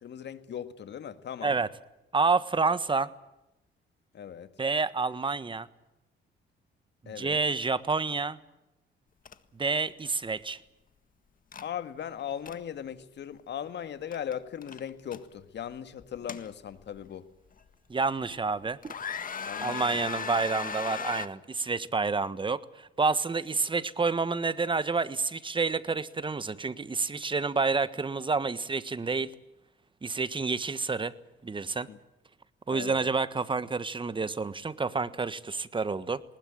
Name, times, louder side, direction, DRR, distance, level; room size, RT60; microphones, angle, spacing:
voice 1, 0.0-1.6 4.1-4.5 7.1-7.4 11.6-17.3 19.4-19.8 31.9-32.0 32.7-33.0, left 9 dB, 60° left, 11 dB, 1.9 m, -38 dB
voice 2, 2.1-3.1 4.6-5.7 7.2-8.4 9.5-10.6 17.9-18.9 19.6-29.3 30.0-31.1 31.4-31.9 32.7-36.2, right 4 dB, 25° right, 14 dB, 1.4 m, -29 dB
sound 1, 9.2-9.3 9.7-9.9 11.5-11.7 12.2-12.6 14.1-14.3 14.6-15.2 16.0-17.0 17.6-17.7 18.3-18.5 18.8-21.3, left 6 dB, 45° left, 1.7 m, -36 dB
20.0 x 20.0 x 8.9 m, 0.92 s
cardioid pair, 90°, 20 cm